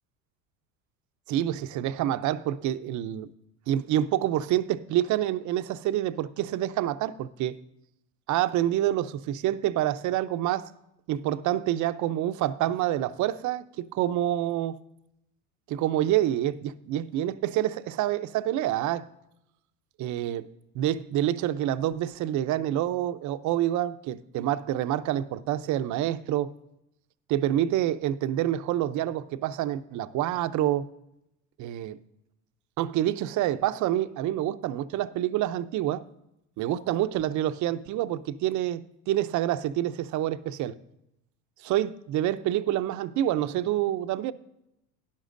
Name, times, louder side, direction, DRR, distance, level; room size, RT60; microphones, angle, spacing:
voice 1, 1.3-3.3 3.7-7.5 8.3-10.7 11.1-14.8 15.7-19.1 20.0-20.5 20.7-26.5 27.3-30.9 31.6-32.0 32.8-36.0 36.6-40.8 41.6-44.3, right 12 dB, 50° right, 0.6 m, -27 dB
12.5 x 10.5 x 2.6 m
supercardioid pair, 100°, 37 cm